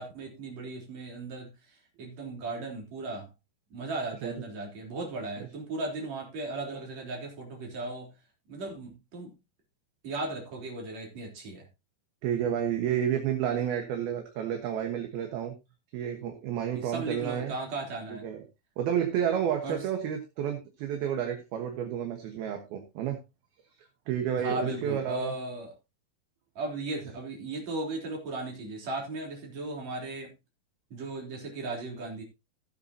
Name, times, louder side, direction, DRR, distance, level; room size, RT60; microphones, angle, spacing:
voice 1, 0.0-3.3 3.7-8.1 8.5-9.4 10.0-11.7 16.7-18.3 19.6-19.9 24.4-25.7 26.6-30.3 30.9-32.2, right 2 dB, 40° right, 0 dB, 4.4 m, -36 dB
voice 2, 12.2-15.5 15.9-17.5 18.1-18.4 18.8-23.2 23.8-25.3, right 9 dB, 65° right, 5 dB, 3.0 m, -31 dB
16.0 x 8.6 x 2.8 m, 0.24 s
omnidirectional pair, 5.2 m